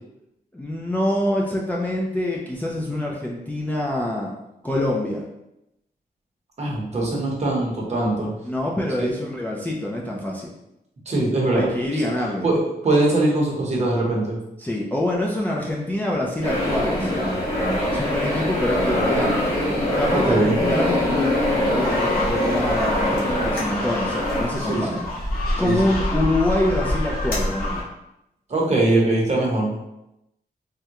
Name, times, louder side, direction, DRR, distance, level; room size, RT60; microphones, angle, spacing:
voice 1, 0.5-4.3 4.6-5.2 8.4-10.5 11.5-12.4 14.6-17.4 17.9-19.5 19.9-25.0 25.6-27.8, left 1 dB, 10° left, -3 dB, 0.3 m, -25 dB
voice 2, 6.6-8.3 9.0-9.1 11.1-11.7 12.4-12.6 12.8-14.4 20.1-20.6 24.6-25.0 25.6-25.7 28.5-29.7, right 2 dB, 40° right, -3 dB, 0.8 m, -21 dB
sound 1, 16.4-24.5, left 1 dB, 35° left, 1.3 m, -23 dB
sound 2, 21.8-27.8, left 1 dB, 60° left, 0.8 m, -27 dB
3.5 x 2.1 x 2.8 m, 0.87 s
wide cardioid pair, 150°, 17 cm